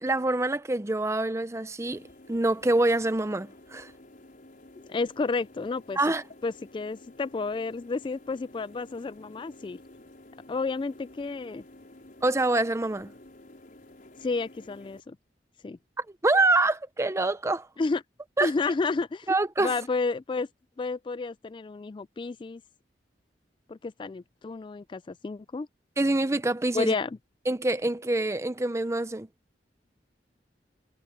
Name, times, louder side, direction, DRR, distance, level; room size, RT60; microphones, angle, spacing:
voice 1, 0.0-3.9 6.0-6.2 12.2-13.1 16.0-17.7 18.4-18.5 19.3-19.7 26.0-26.9 27.5-29.3, right 2 dB, 15° right, 0.6 m, -26 dB
sound 1, 1.8-15.0, left 1 dB, 50° left, 5.7 m, -52 dB
voice 2, 4.8-6.0 6.4-9.8 10.5-11.6 14.2-15.2 15.6-15.8 17.8-18.0 18.4-19.3 19.6-20.5 20.8-22.6 23.7-25.7 26.7-27.2, left 3 dB, 25° left, 0.3 m, -31 dB
head